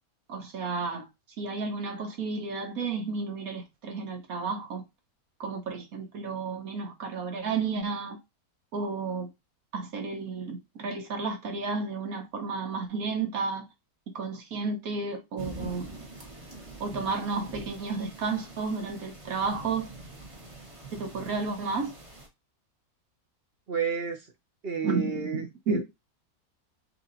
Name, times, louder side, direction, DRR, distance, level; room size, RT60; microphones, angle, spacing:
voice 1, 0.3-1.0 1.4-4.8 5.4-8.2 8.7-9.3 9.7-13.7 14.1-15.9 16.8-19.9 20.9-21.9 24.8-25.8, right 4 dB, 70° right, 1.5 m, -32 dB
sound 1, 15.4-22.3, right 2 dB, 25° right, 1.1 m, -44 dB
voice 2, 23.7-24.3 24.6-25.8, right 6 dB, 45° right, 1.0 m, -31 dB
6.4 x 3.0 x 2.6 m
omnidirectional pair, 1.6 m